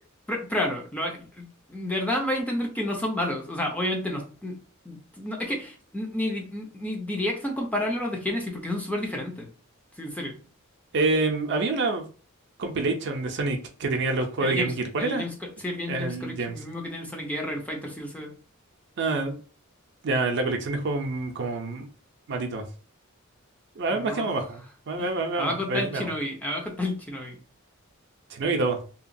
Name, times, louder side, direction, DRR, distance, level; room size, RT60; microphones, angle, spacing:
voice 1, 0.3-4.6 4.8-9.5 10.0-10.4 14.4-18.3 23.9-24.3 25.0-25.1 25.4-27.4, left 1 dB, 5° left, 0.5 m, -30 dB
voice 2, 10.9-12.0 12.6-15.3 15.9-16.6 19.0-19.4 20.0-21.9 22.3-22.6 23.8-26.1 28.3-28.8, right 3 dB, 55° right, 0.5 m, -27 dB
2.8 x 2.2 x 2.6 m
head